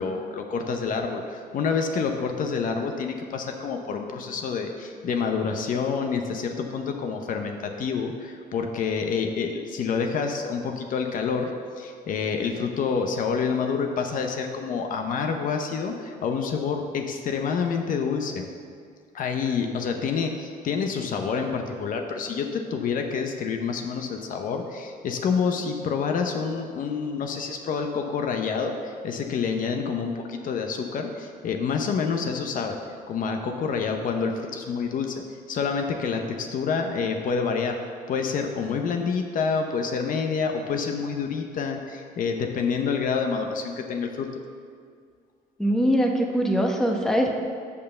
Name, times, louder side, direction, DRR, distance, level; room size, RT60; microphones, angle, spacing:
voice 1, 0.0-18.5 19.1-32.8 33.1-35.2 35.5-37.8 38.1-44.3, left 5 dB, 55° left, 4 dB, 0.8 m, -28 dB
voice 2, 45.6-47.4, equal, 5° left, 1 dB, 0.9 m, -22 dB
6.6 x 5.5 x 6.7 m, 2.1 s
cardioid pair, 110°, 17 cm